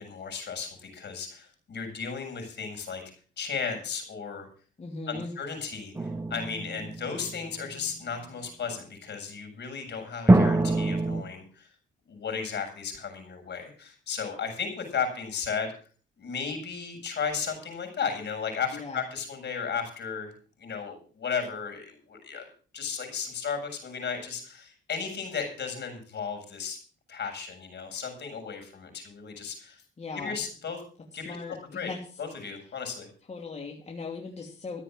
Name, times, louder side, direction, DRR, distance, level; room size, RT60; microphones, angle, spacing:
voice 1, 0.0-3.0 3.4-4.5 5.1-11.7 12.1-15.7 16.2-20.3 20.6-22.5 22.7-26.8 27.1-29.8 30.1-30.8 31.1-31.9 32.2-33.1, left 6 dB, 60° left, 5 dB, 7.0 m, -35 dB
voice 2, 4.8-5.3 18.7-19.0 30.0-30.4 31.2-32.0 33.3-34.8, left 4 dB, 35° left, 0 dB, 2.9 m, -38 dB
sound 1, 5.9-7.7 10.3-11.2, right 2 dB, 10° right, 1.5 m, -24 dB
14.5 x 7.9 x 7.6 m, 0.41 s
cardioid pair, 90°, 20 cm